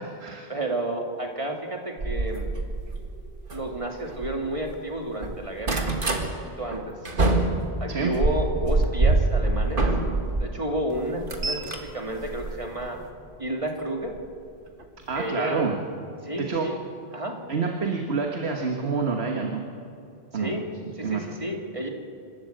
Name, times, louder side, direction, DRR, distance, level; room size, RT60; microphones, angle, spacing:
voice 1, 0.5-2.5 3.5-5.8 6.6-7.0 7.8-9.8 10.4-13.0 13.4-14.1 15.1-15.7 16.2-16.7 17.1-17.4 20.3-20.7 21.0-21.9, right 1 dB, 30° right, 2 dB, 2.1 m, -31 dB
sound 1, 2.0-4.8 5.1-6.3 6.7-10.5 10.9-13.1 14.1-14.3 14.8-14.9 15.1-15.2, right 2 dB, 55° right, 1.9 m, -26 dB
voice 2, 7.9-8.2 15.1-15.7 16.4-16.7 17.5-19.6 20.3-20.5 21.0-21.2, right 5 dB, 80° right, 2 dB, 1.7 m, -27 dB
26.5 x 13.0 x 7.8 m, 2.4 s
omnidirectional pair, 1.1 m